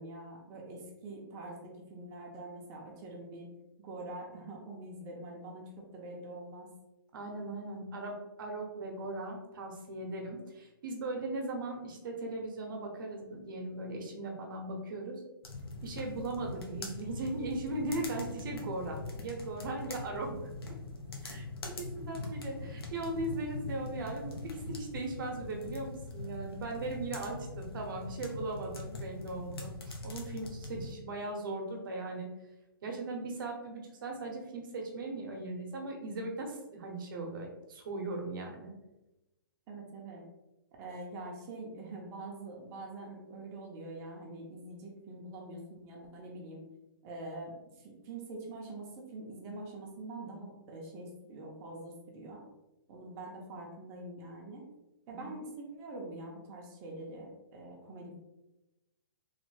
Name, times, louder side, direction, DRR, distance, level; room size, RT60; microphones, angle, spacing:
voice 1, 0.0-3.5 3.8-6.7 39.7-40.2 40.8-46.6 47.0-52.4 52.9-54.7 55.1-58.2, right 2 dB, 25° right, -1 dB, 0.6 m, -45 dB
voice 2, 7.1-15.2 15.8-20.4 21.2-29.7 30.0-32.3 32.8-38.7 55.1-55.3, right 2 dB, 60° right, 1 dB, 0.8 m, -38 dB
sound 1, 15.4-30.9, left 2 dB, 85° left, 0.7 m, -42 dB
3.2 x 2.1 x 3.1 m, 0.98 s
hypercardioid pair, 150°, 12 cm